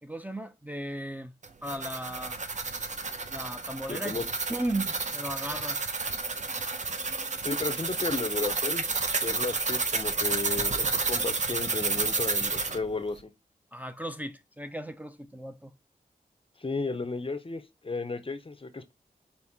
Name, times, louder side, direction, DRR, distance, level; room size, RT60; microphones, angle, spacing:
voice 1, 0.0-1.3 1.6-2.4 3.3-4.2 4.5-5.8 13.7-15.7, right 1 dB, 10° right, 0.5 m, -36 dB
sound 1, 1.4-12.8, right 4 dB, 50° right, 0.6 m, -30 dB
voice 2, 3.9-4.2 7.4-8.8 9.2-13.3 16.6-18.9, left 3 dB, 35° left, 0.6 m, -33 dB
4.3 x 2.8 x 3.5 m
cardioid pair, 55°, 16 cm